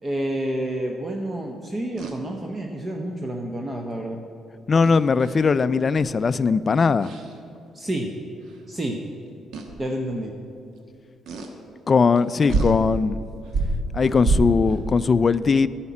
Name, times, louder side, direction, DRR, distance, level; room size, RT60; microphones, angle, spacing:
voice 1, 0.0-4.2 7.7-8.1 8.7-9.0 9.8-10.3, right 1 dB, 25° right, 2 dB, 0.9 m, -29 dB
sound 1, 2.0-2.2 4.8-5.5 6.0-6.2 7.0-7.3 8.5-8.6 9.5-9.8 11.3-11.5 12.2-12.3 12.5-12.8 13.5-14.8, right 3 dB, 75° right, 1.2 m, -26 dB
voice 2, 4.7-7.1 11.9-13.2 13.9-15.7, left 5 dB, 40° left, 16 dB, 0.3 m, -19 dB
9.6 x 5.8 x 8.4 m, 2.6 s
cardioid pair, 90°, 0 cm